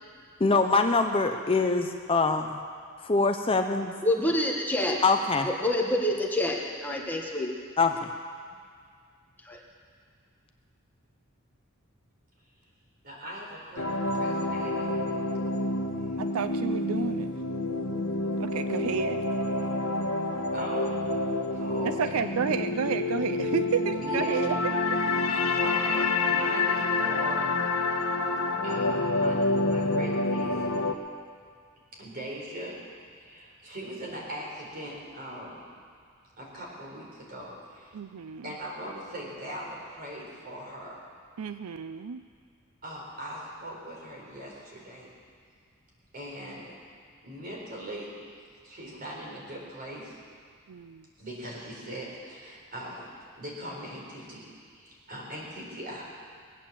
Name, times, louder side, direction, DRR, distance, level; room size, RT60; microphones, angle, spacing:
voice 1, 0.4-2.6 3.0-3.9 5.0-5.5 7.8-8.1, left 3 dB, 25° left, 5 dB, 0.7 m, -24 dB
voice 2, 4.0-5.0 5.5-7.5 9.4-9.6, left 1 dB, 10° left, -1 dB, 1.3 m, -27 dB
voice 3, 13.0-14.9 20.5-20.9 21.5-22.2 24.0-24.4 25.3-27.5 28.6-30.7 31.9-32.8 33.2-35.6 36.4-38.0 38.4-41.0 42.8-45.1 46.1-46.8 47.2-48.1 48.6-50.2 51.2-53.1 53.4-56.1, equal, 45° right, -3 dB, 4.4 m, -40 dB
sound 1, 13.8-30.9, left 2 dB, 80° left, 1.2 m, -28 dB
voice 4, 16.2-17.3 18.4-19.2 21.8-24.6 24.9-25.0 37.9-38.6 41.4-42.2 50.7-51.1, right 6 dB, 80° right, 10 dB, 0.5 m, -31 dB
21.0 x 8.8 x 7.5 m, 2.1 s
head